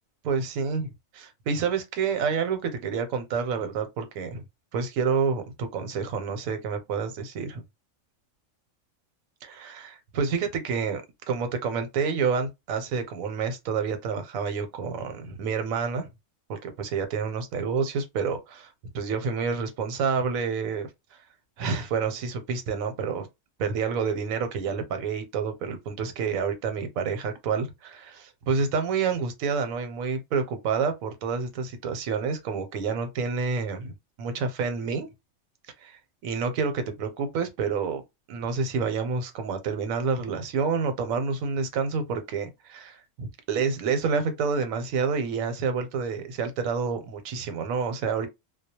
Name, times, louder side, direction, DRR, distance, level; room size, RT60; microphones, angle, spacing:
voice 1, 0.2-4.4 4.7-7.6 9.4-16.1 16.5-18.7 18.9-20.9 21.6-23.3 23.6-35.1 35.8-38.0 38.3-48.3, right 5 dB, 85° right, 1.0 m, -28 dB
2.3 x 2.0 x 2.8 m
omnidirectional pair, 1.4 m